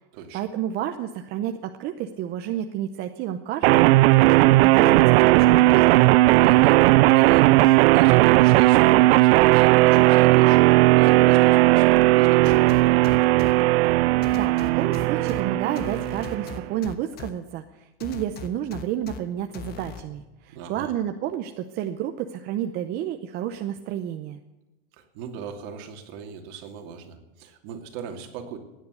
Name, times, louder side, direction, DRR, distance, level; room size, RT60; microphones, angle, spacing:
voice 1, 0.3-3.9 4.4-5.8 14.3-24.4, right 11 dB, 30° right, 6 dB, 0.7 m, -30 dB
sound 1, 3.6-16.6, right 17 dB, 65° right, 0.5 m, -16 dB
voice 2, 6.4-6.8 7.1-13.0 20.5-20.9 24.9-28.6, right 7 dB, 45° right, 4 dB, 2.6 m, -39 dB
sound 2, 12.4-13.5 14.2-15.4 15.8-17.3 18.0-19.2 19.5-20.0, left 6 dB, 30° left, 1.2 m, -38 dB
16.0 x 9.9 x 8.2 m, 1.1 s
supercardioid pair, 160°, 33 cm